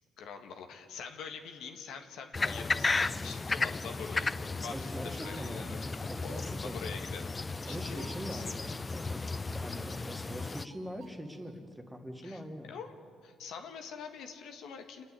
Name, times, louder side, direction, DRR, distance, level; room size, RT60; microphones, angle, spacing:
voice 1, 0.2-7.3 7.7-8.5 12.2-12.9 13.2-15.0, left 6 dB, 80° left, 5 dB, 1.7 m, -45 dB
sound 1, 2.3-10.7, left 3 dB, 25° left, 0.5 m, -34 dB
sound 2, 2.5-11.6, right 7 dB, 75° right, 1.2 m, -60 dB
voice 2, 4.7-6.8 7.6-12.7, equal, 5° right, 4 dB, 2.0 m, -43 dB
28.5 x 9.6 x 9.7 m, 2.3 s
cardioid pair, 90°, 0 cm